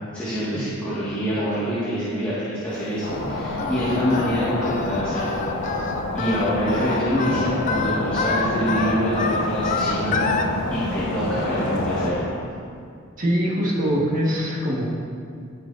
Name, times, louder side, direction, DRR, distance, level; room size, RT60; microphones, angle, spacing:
voice 1, 0.1-5.7 6.1-12.4, equal, 5° left, -13 dB, 1.7 m, -26 dB
sound 1, 3.0-12.1, left 2 dB, 65° left, 1.2 m, -27 dB
Singing, 3.6-10.5, left 4 dB, 35° left, 0.5 m, -28 dB
voice 2, 13.2-14.8, equal, 40° right, -4 dB, 1.5 m, -23 dB
15.0 x 6.1 x 2.6 m, 2.3 s
head